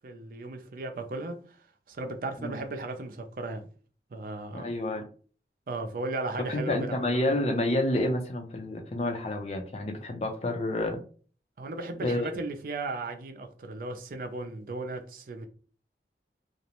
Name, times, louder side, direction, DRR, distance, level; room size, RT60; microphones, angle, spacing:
voice 1, 0.0-1.6 1.9-3.7 4.1-4.7 5.7-7.1 11.6-15.5, right 2 dB, 50° right, 0.4 m, -36 dB
voice 2, 4.5-5.0 6.5-11.0 12.0-12.3, left 1 dB, 35° left, 0.4 m, -29 dB
2.5 x 2.0 x 2.8 m
head